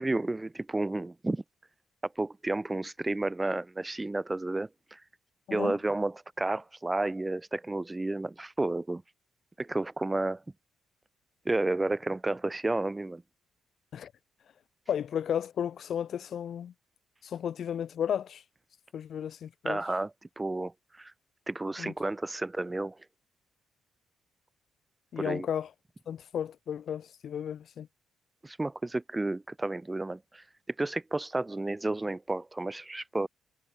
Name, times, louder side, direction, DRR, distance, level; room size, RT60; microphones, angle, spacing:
voice 1, 0.0-1.4 2.0-5.0 5.5-9.0 9.6-10.4 11.4-13.2 19.6-20.1 20.4-21.1 21.5-23.0 25.2-25.5 28.4-30.4 30.8-33.3, right 2 dB, 15° right, 1.2 m, -31 dB
voice 2, 5.5-5.8 13.9-14.1 14.9-16.7 17.2-18.4 18.9-19.8 21.8-21.9 25.1-25.7 26.1-27.9, left 9 dB, 60° left, 1.1 m, -33 dB
cardioid pair, 90°, 0 cm